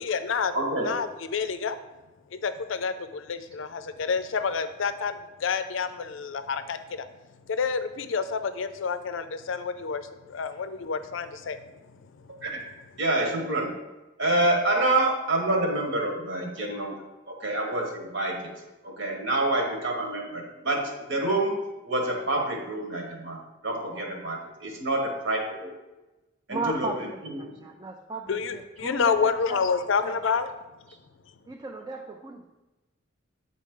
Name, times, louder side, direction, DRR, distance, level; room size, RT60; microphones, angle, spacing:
voice 1, 0.0-0.5 0.8-1.8 2.3-7.1 7.5-10.0 10.3-11.6 12.1-12.2 28.3-30.5, left 5 dB, 70° left, 11 dB, 0.5 m, -28 dB
voice 2, 0.5-0.9 12.4-12.6 13.0-13.7 14.2-16.9 17.3-18.4 18.8-21.6 21.8-23.4 23.6-25.7 26.5-26.9 27.2-27.6, right 2 dB, 65° right, 1 dB, 1.4 m, -27 dB
voice 3, 26.5-27.2 27.6-29.6 30.0-30.2 31.5-32.4, right 3 dB, 20° right, 1 dB, 0.4 m, -35 dB
8.4 x 4.1 x 3.7 m, 1.1 s
head